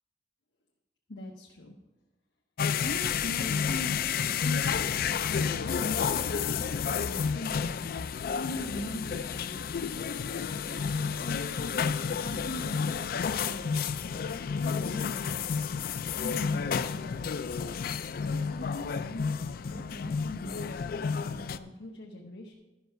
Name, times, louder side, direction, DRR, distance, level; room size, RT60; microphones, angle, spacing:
voice 1, 1.1-1.7 2.8-10.1 10.7-13.8 14.5-15.6 16.1-17.5 18.2-20.7 21.0-22.5, left 1 dB, 90° left, 0 dB, 0.9 m, -42 dB
sound 1, 2.6-21.6, left 6 dB, 55° left, 0.4 m, -31 dB
12.0 x 5.6 x 5.6 m, 1.1 s
head